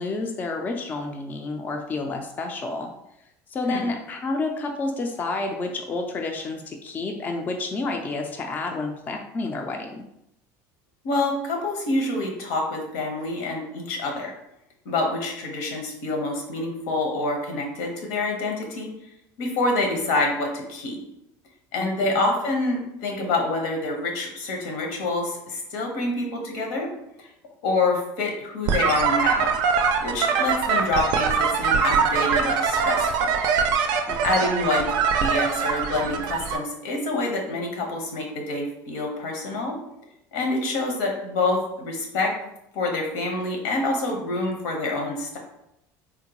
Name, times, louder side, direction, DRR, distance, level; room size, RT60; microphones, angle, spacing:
voice 1, 0.0-2.9 3.5-10.0 21.8-22.2 34.1-34.4, left 3 dB, 20° left, 3 dB, 0.3 m, -30 dB
voice 2, 11.0-14.4 14.8-18.9 19.4-21.0 21.7-26.9 27.2-27.3 27.6-29.6 30.0-33.4 34.2-34.9 35.2-39.7 40.3-42.3 42.7-45.4, left 2 dB, 90° left, 1 dB, 0.9 m, -27 dB
sound 1, 28.7-36.6, right 6 dB, 65° right, 0.4 m, -23 dB
3.6 x 2.1 x 2.9 m, 0.81 s
cardioid pair, 145°, 8 cm